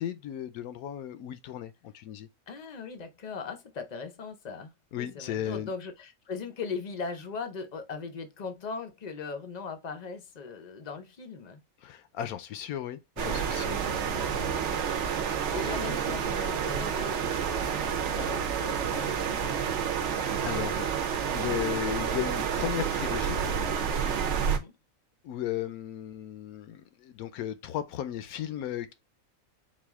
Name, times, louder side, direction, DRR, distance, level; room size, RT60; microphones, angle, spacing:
voice 1, 0.0-2.3 4.9-5.7 11.8-13.8 14.8-15.4 20.4-20.9 21.3-23.4 25.2-28.9, left 11 dB, 80° left, 1.1 m, -35 dB
voice 2, 2.5-11.6 13.8-13.9 15.0-19.9 24.4-24.7, left 5 dB, 50° left, 0.5 m, -39 dB
sound 1, 13.2-24.6, right 7 dB, 60° right, 0.9 m, -29 dB
4.1 x 2.5 x 3.5 m
omnidirectional pair, 1.5 m